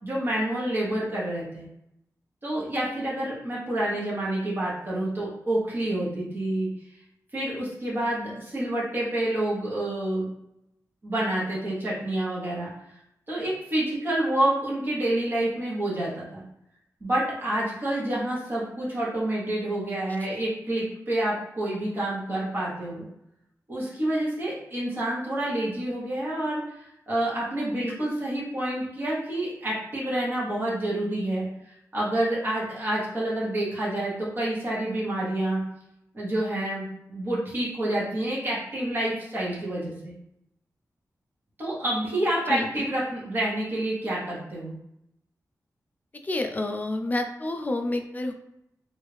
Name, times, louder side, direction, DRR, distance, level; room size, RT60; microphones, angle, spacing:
voice 1, 0.0-1.7 2.4-6.7 7.3-10.3 11.0-12.7 13.3-16.4 17.0-23.0 23.7-31.5 31.9-35.6 36.1-40.1 41.6-44.8, right 1 dB, 35° right, -6 dB, 1.2 m, -28 dB
voice 2, 42.5-42.9 46.2-48.3, left 2 dB, 25° left, 5 dB, 0.4 m, -29 dB
3.2 x 2.6 x 3.3 m, 0.80 s
wide cardioid pair, 175°, 6 cm